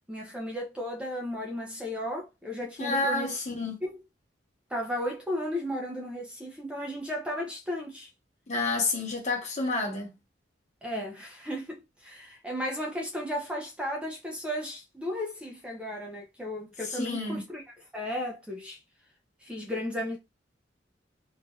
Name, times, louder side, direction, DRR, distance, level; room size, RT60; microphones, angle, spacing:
voice 1, 0.1-3.4 3.8-4.0 4.7-8.1 10.8-17.6 17.9-18.8 19.4-20.2, equal, 5° right, 0.6 m, -34 dB
voice 2, 2.8-3.8 8.5-10.1 16.8-17.4, left 3 dB, 40° left, 1.1 m, -29 dB
3.2 x 2.6 x 2.3 m
head